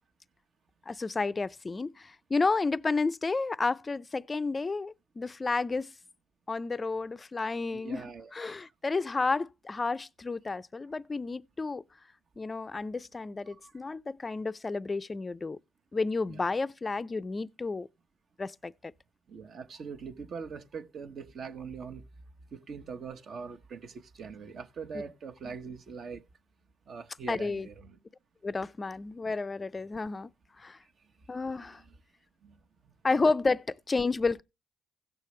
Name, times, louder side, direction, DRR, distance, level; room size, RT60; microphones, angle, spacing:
voice 1, 0.9-5.9 6.5-11.8 12.4-15.6 15.9-17.9 18.4-18.9 25.4-25.5 27.3-27.7 28.4-30.3 30.6-30.8 31.3-31.8 33.0-34.4, left 3 dB, 25° left, 0.4 m, -31 dB
voice 2, 7.7-8.5 13.6-13.7 16.3-16.4 19.3-22.0 22.5-26.2 26.9-28.0 31.6-32.0 32.4-32.6 32.8-32.9, right 5 dB, 55° right, 1.2 m, -42 dB
16.5 x 6.6 x 3.1 m
cardioid pair, 90°, 0 cm